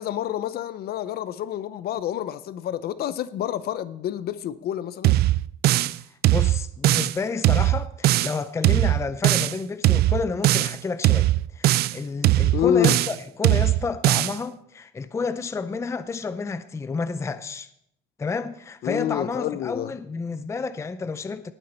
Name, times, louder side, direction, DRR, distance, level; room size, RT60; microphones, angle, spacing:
voice 1, 0.0-5.2 12.5-13.0 18.8-19.9, left 10 dB, 50° left, 0.7 m, -28 dB
sound 1, 5.0-6.0 6.2-7.2 7.4-8.4 8.6-9.6 9.8-10.8 11.0-12.0 12.2-13.2 13.4-14.4, right 16 dB, 55° right, 0.4 m, -20 dB
voice 2, 5.9-17.7 18.2-21.5, left 4 dB, 15° left, 0.5 m, -30 dB
18.0 x 9.4 x 4.4 m
cardioid pair, 145°, 20 cm